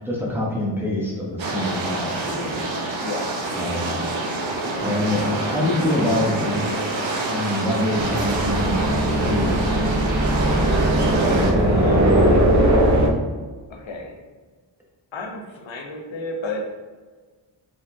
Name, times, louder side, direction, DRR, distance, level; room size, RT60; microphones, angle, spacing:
voice 1, 0.0-2.6 3.5-4.0 4.3-4.4 4.8-6.8 7.2-10.5 11.3-12.5, left 1 dB, 5° right, -5 dB, 0.9 m, -26 dB
sound 1, 1.4-11.5, right 2 dB, 75° right, 0.9 m, -27 dB
voice 2, 3.0-3.5 11.6-12.5 13.7-14.2 15.1-16.6, left 2 dB, 85° left, 2 dB, 0.8 m, -32 dB
sound 2, 8.0-13.1, right 1 dB, 40° right, 0.7 m, -19 dB
4.9 x 3.7 x 2.6 m, 1.4 s
wide cardioid pair, 155°, 45 cm